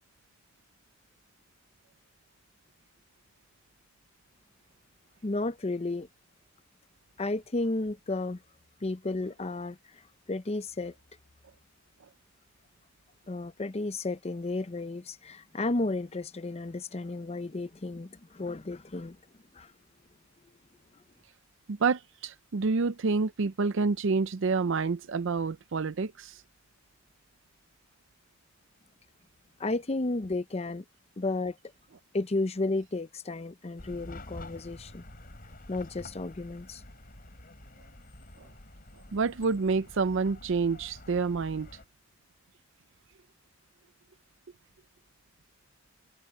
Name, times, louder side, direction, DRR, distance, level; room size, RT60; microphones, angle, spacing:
voice 1, 5.2-6.1 7.2-8.4 8.8-10.0 10.3-10.9 13.3-19.2 19.5-19.7 29.6-30.8 31.2-31.6 32.1-35.0 35.7-36.8, left 2 dB, 30° left, 0.7 m, -33 dB
voice 2, 21.7-26.4 39.1-41.7, right 4 dB, 65° right, 0.5 m, -28 dB
Chatter / Car passing by / Traffic noise roadway noise, 33.8-41.8, left 1 dB, 45° left, 4.4 m, -48 dB
head